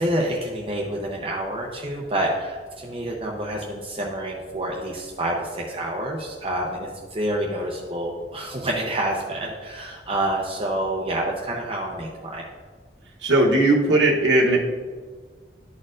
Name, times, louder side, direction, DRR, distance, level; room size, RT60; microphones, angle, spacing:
voice 1, 0.0-12.4, right 1 dB, 30° right, -2 dB, 0.7 m, -28 dB
voice 2, 13.2-14.6, right 2 dB, 85° right, -2 dB, 1.0 m, -18 dB
11.5 x 4.3 x 2.5 m, 1.5 s
head